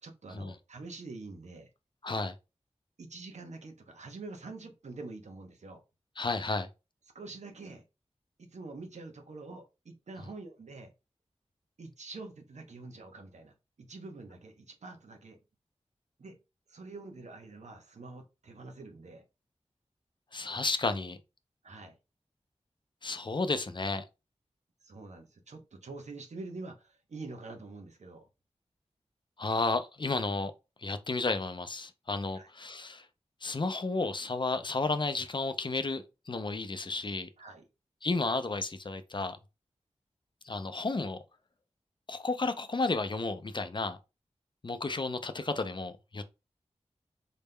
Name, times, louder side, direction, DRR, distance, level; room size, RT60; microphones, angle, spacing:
voice 1, 0.0-1.7 3.0-5.8 7.1-7.8 8.4-10.9 11.8-15.4 16.2-16.4 16.7-19.2 21.6-22.0 24.8-28.2 32.3-32.5 37.4-37.7, right 3 dB, 75° right, 0.8 m, -46 dB
voice 2, 2.0-2.3 6.2-6.7 20.3-21.2 23.0-24.0 29.4-30.5 30.8-33.1 33.4-37.3 38.0-39.4 40.4-41.2 42.1-44.0 44.6-46.2, left 3 dB, 40° left, 0.5 m, -32 dB
4.1 x 3.4 x 2.2 m
cardioid pair, 45°, 12 cm